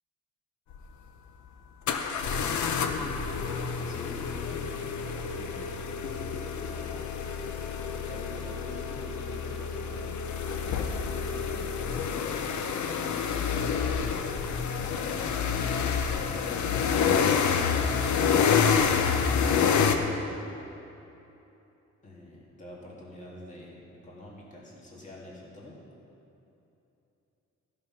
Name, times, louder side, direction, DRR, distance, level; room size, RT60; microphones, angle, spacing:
sound 1, 0.7-0.8 1.9-20.0, left 6 dB, 75° left, 0.7 m, -28 dB
voice 1, 2.2-5.8 6.5-7.0 7.9-10.1 10.6-11.9 15.6-17.4 22.0-25.8, left 1 dB, 25° left, -4 dB, 2.0 m, -46 dB
14.5 x 5.7 x 5.7 m, 2.9 s
wide cardioid pair, 165°, 29 cm